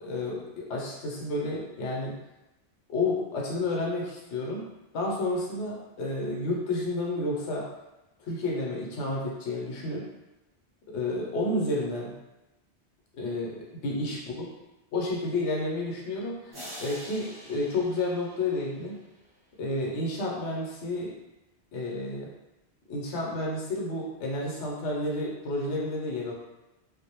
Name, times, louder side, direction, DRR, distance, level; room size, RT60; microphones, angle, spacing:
voice 1, 0.0-2.1 2.9-4.7 4.9-7.7 8.2-10.1 10.9-12.1 13.2-14.5 14.9-19.0 19.6-21.1 21.7-22.3 22.9-26.3, left 2 dB, 80° left, -2 dB, 0.9 m, -31 dB
sound 1, 16.5-19.2, equal, 25° right, 0.6 m, -45 dB
2.4 x 2.0 x 2.8 m, 0.99 s
omnidirectional pair, 1.1 m